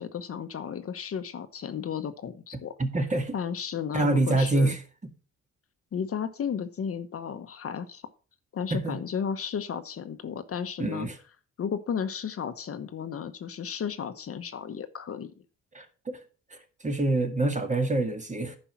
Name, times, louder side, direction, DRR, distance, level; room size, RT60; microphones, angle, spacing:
voice 1, 0.0-2.7 3.3-4.7 5.9-8.0 8.5-11.1 11.6-15.3, left 7 dB, 50° left, 1.0 m, -33 dB
voice 2, 2.8-3.3 3.9-4.8 8.7-9.0 10.8-11.2 15.7-16.2 16.5-16.6 16.8-18.6, right 2 dB, 25° right, 1.9 m, -26 dB
10.0 x 5.4 x 5.8 m
cardioid pair, 90°, 30 cm